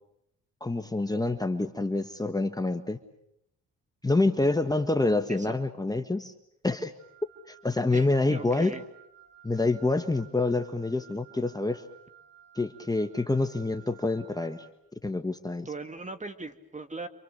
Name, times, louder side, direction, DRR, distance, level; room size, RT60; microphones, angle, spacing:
voice 1, 0.6-3.0 4.0-6.3 6.6-6.9 7.5-8.7 9.4-11.8 12.5-14.6 15.0-15.7, left 2 dB, 10° left, 8 dB, 1.4 m, -27 dB
Wind instrument woodwind instrument, 7.0-14.8, right 10 dB, 80° right, 4.9 m, -56 dB
voice 2, 7.9-8.8 15.6-17.1, right 3 dB, 25° right, 9 dB, 2.2 m, -39 dB
29.0 x 25.5 x 6.8 m, 0.77 s
supercardioid pair, 65°, 32 cm